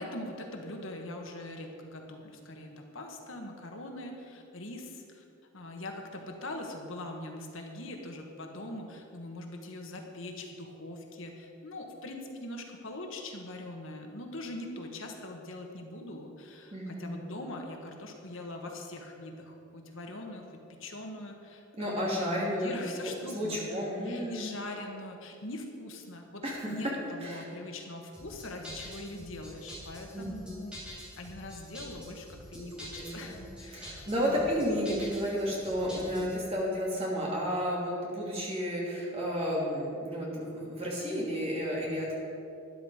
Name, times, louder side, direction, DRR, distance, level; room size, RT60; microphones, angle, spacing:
voice 1, 0.0-5.2 5.5-30.8 31.2-34.0 34.3-34.6, left 1 dB, 65° left, 2 dB, 1.4 m, -42 dB
voice 2, 16.7-17.1 21.7-22.7 23.3-24.5 26.4-26.7 27.2-27.4 30.1-30.6 32.5-32.7 32.9-33.3 33.7-42.2, equal, 30° right, -4 dB, 2.8 m, -32 dB
sound 1, 28.1-36.4, equal, 5° right, 3.0 m, -46 dB
12.5 x 10.5 x 4.9 m, 2.6 s
head